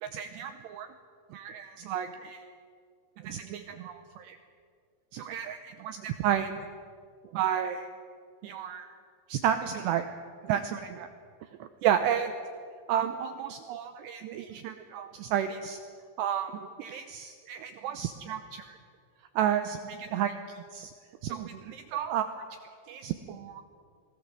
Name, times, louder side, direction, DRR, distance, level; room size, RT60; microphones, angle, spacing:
voice 1, 0.0-0.9 1.3-2.5 3.2-4.4 5.1-6.7 7.3-7.9 8.4-9.0 9.3-10.1 10.4-11.1 11.6-12.4 12.9-15.8 16.2-18.8 19.4-20.9 21.2-22.5 22.9-23.6, right 9 dB, 90° right, 9 dB, 2.4 m, -32 dB
26.0 x 19.5 x 7.6 m, 2.3 s
omnidirectional pair, 5.9 m